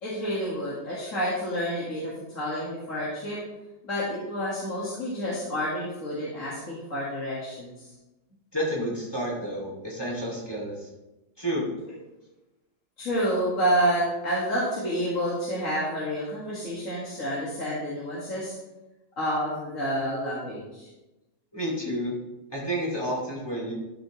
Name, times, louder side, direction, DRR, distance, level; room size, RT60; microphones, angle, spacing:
voice 1, 0.0-3.4 3.8-7.7 13.0-18.5 19.2-20.9, equal, 45° left, -7 dB, 2.1 m, -29 dB
voice 2, 8.5-10.9 11.4-11.6 21.5-22.1 22.5-23.7, equal, 15° left, -4 dB, 2.4 m, -30 dB
12.5 x 6.3 x 3.1 m, 1.0 s
omnidirectional pair, 1.9 m